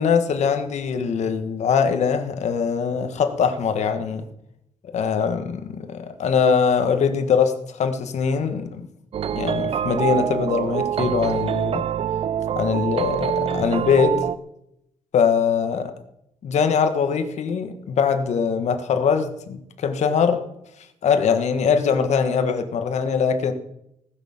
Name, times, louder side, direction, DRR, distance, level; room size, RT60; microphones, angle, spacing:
voice 1, 0.0-4.2 4.9-7.5 7.8-8.8 9.3-11.8 12.5-14.2 15.1-15.9 16.4-20.4 21.0-23.5, left 6 dB, 70° left, 1.6 m, -22 dB
sound 1, 9.1-14.4, right 9 dB, 50° right, 0.6 m, -25 dB
19.0 x 6.7 x 7.3 m
cardioid pair, 120°, 12 cm